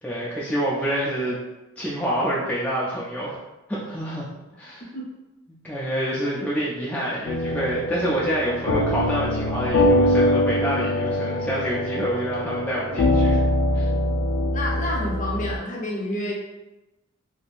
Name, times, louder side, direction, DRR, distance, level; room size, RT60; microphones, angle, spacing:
voice 1, 0.0-1.4 1.8-3.4 3.7-4.3 4.6-4.9 5.6-13.4 13.7-13.9, equal, 5° left, -7 dB, 0.4 m, -27 dB
sound 1, 7.3-15.6, left 1 dB, 90° left, 0.5 m, -23 dB
voice 2, 14.5-16.3, left 1 dB, 40° left, -3 dB, 0.7 m, -29 dB
3.4 x 2.7 x 2.4 m, 1.0 s
head